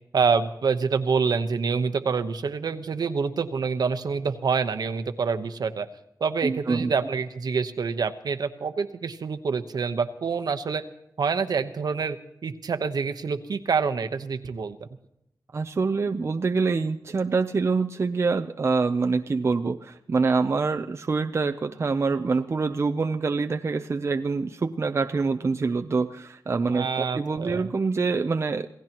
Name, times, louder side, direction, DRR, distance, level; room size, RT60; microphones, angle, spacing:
voice 1, 0.1-5.9 6.2-10.8 11.2-12.2 12.4-14.9 26.7-27.7, right 5 dB, 60° right, 9 dB, 1.1 m, -26 dB
voice 2, 6.4-6.9 15.5-28.7, right 4 dB, 35° right, 6 dB, 0.6 m, -25 dB
27.5 x 16.5 x 3.0 m, 0.80 s
wide cardioid pair, 150°, 8 cm